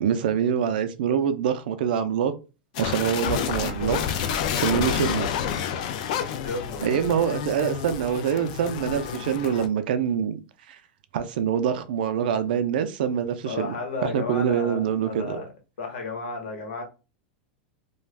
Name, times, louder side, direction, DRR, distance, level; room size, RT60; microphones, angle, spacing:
voice 1, 0.0-2.3 2.8-5.3 6.8-10.4 10.7-10.8 11.1-13.7 14.0-15.4, right 8 dB, 65° right, 0.4 m, -25 dB
sound 1, 2.7-9.7, left 8 dB, 45° left, 0.3 m, -29 dB
voice 2, 6.4-6.9 13.4-15.4 15.8-16.8, left 3 dB, 70° left, 1.1 m, -33 dB
2.4 x 2.2 x 3.2 m
supercardioid pair, 175°, 6 cm